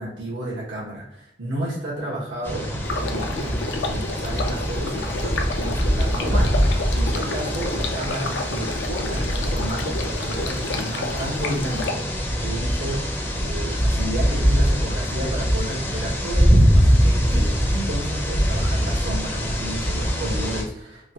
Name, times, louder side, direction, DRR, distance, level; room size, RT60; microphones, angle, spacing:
voice 1, 0.0-21.1, right 1 dB, 75° right, -6 dB, 0.9 m, -32 dB
sound 1, 2.4-20.6, equal, 10° left, 0.5 m, -23 dB
Stream, 2.8-11.9, left 3 dB, 65° left, 0.4 m, -31 dB
3.0 x 2.3 x 2.7 m, 0.77 s
head